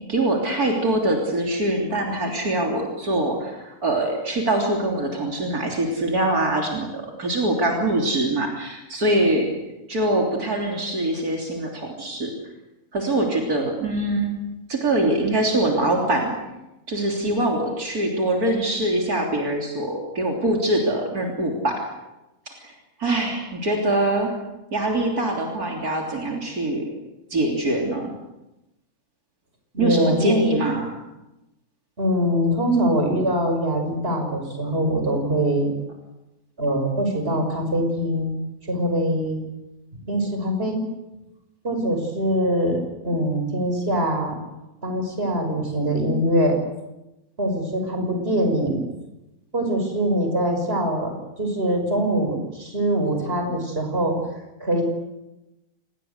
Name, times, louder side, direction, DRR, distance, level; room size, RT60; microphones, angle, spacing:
voice 1, 0.1-9.5 9.9-12.3 12.9-14.3 14.7-16.4 16.9-21.8 22.6-24.3 24.7-26.8 27.3-28.1 29.8-30.9, right 1 dB, 75° right, 0 dB, 3.8 m, -23 dB
voice 2, 29.7-30.4 32.0-35.7 36.6-39.4 39.9-40.8 41.6-44.4 44.8-46.6 47.4-48.8 49.5-54.2 54.6-54.8, equal, 40° right, 4 dB, 6.2 m, -23 dB
27.5 x 20.0 x 8.2 m, 0.97 s
omnidirectional pair, 1.6 m